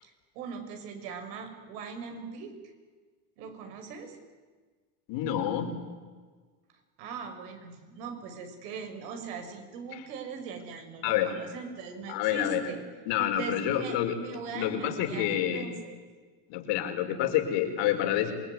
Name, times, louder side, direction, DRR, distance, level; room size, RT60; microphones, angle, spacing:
voice 1, 0.0-2.5 3.4-4.2 7.0-12.8 13.4-16.0, right 5 dB, 80° right, 6 dB, 6.2 m, -40 dB
voice 2, 5.1-5.7 11.0-11.3 12.1-12.7 13.1-14.2 14.5-15.7 16.5-18.3, left 11 dB, 65° left, 4 dB, 5.1 m, -28 dB
27.0 x 20.5 x 9.6 m, 1.4 s
supercardioid pair, 125°, 46 cm